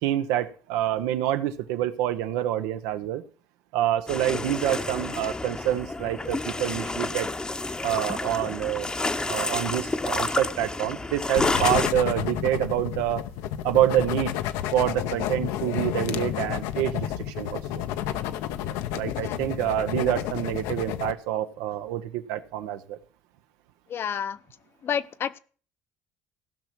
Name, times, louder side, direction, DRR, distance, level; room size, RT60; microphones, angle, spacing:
voice 1, 0.0-3.2 3.7-7.3 7.8-8.9 9.2-13.3 13.6-14.3 14.7-17.8 18.9-23.0, right 12 dB, 85° right, 10 dB, 0.9 m, -27 dB
sound 1, 4.1-11.9, left 2 dB, 15° left, 0.8 m, -30 dB
sound 2, 11.4-21.1, left 11 dB, 85° left, 0.8 m, -30 dB
voice 2, 23.9-24.4 24.8-25.4, left 8 dB, 45° left, 14 dB, 0.7 m, -29 dB
16.0 x 5.9 x 6.1 m, 0.42 s
cardioid pair, 100°, 5 cm